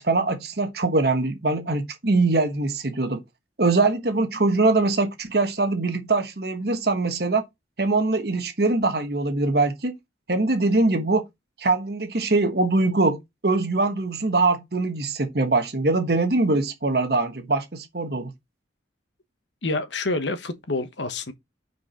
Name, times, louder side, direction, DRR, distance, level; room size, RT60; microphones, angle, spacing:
voice 1, 0.0-3.2 3.6-7.4 7.8-10.0 10.3-11.2 11.6-18.3, right 3 dB, 55° right, 1.1 m, -22 dB
voice 2, 19.6-21.3, left 2 dB, 75° left, 1.2 m, -27 dB
6.2 x 4.5 x 5.6 m
head